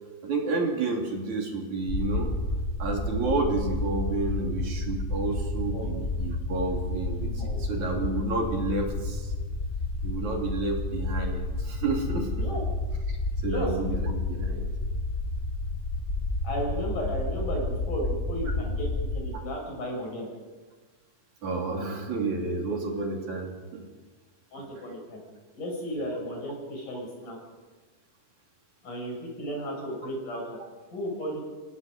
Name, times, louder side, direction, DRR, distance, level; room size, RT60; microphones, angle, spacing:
voice 1, 0.2-2.3 2.8-7.3 7.6-9.3 10.0-12.5 13.1-13.2 13.4-14.7 21.4-23.9 25.9-26.0, right 3 dB, 60° right, 1 dB, 4.3 m, -30 dB
sound 1, 1.9-19.2, left 2 dB, 30° left, 1.5 m, -30 dB
voice 2, 7.2-7.6 12.4-12.6 13.5-13.7 16.4-20.3 24.5-25.2 25.5-27.4 28.8-30.6 30.9-31.4, equal, 70° left, -1 dB, 8.6 m, -34 dB
29.5 x 17.5 x 5.5 m, 1.3 s
omnidirectional pair, 3.8 m